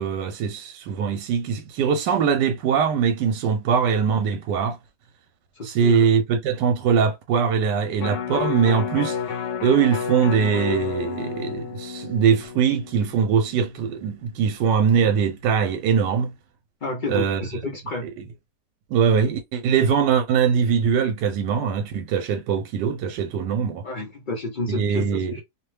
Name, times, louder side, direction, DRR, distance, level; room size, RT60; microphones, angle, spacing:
voice 1, 0.0-4.8 5.6-9.2 9.6-16.3 17.1-17.4 18.9-23.8 24.7-25.3, right 7 dB, 80° right, 1.2 m, -22 dB
voice 2, 5.6-6.1 16.8-18.1 23.8-25.4, left 2 dB, 80° left, 0.4 m, -30 dB
Electric guitar, 8.0-14.2 14.6-14.7, left 7 dB, 60° left, 0.9 m, -31 dB
2.8 x 2.0 x 3.2 m
omnidirectional pair, 1.8 m